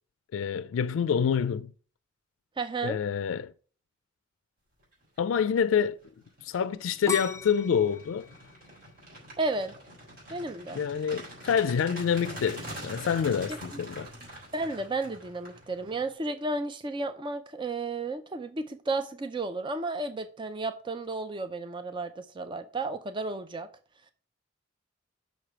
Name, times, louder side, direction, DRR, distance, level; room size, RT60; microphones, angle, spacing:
voice 1, 0.3-1.7 2.8-3.5 5.2-6.0 6.4-8.3 10.7-14.1, left 7 dB, 85° left, 0.3 m, -27 dB
voice 2, 2.6-3.0 9.4-9.7 10.3-10.8 13.7-13.8 14.5-23.7, right 3 dB, 25° right, 0.5 m, -33 dB
sound 1, 5.3-5.6 6.0-16.1, right 1 dB, 50° right, 3.9 m, -44 dB
sound 2, 7.1-10.0 10.5-11.0, left 4 dB, 15° left, 0.6 m, -37 dB
6.5 x 4.9 x 5.7 m
head